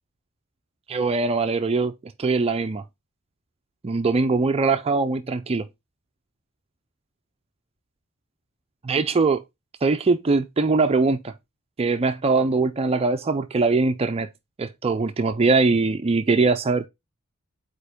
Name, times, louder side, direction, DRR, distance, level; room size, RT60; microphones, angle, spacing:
voice 1, 0.9-1.9 2.2-2.8 3.8-5.7 8.8-9.4 9.8-11.3 11.8-14.3 14.6-16.9, right 3 dB, 30° right, 0.4 m, -22 dB
5.1 x 4.4 x 4.9 m
head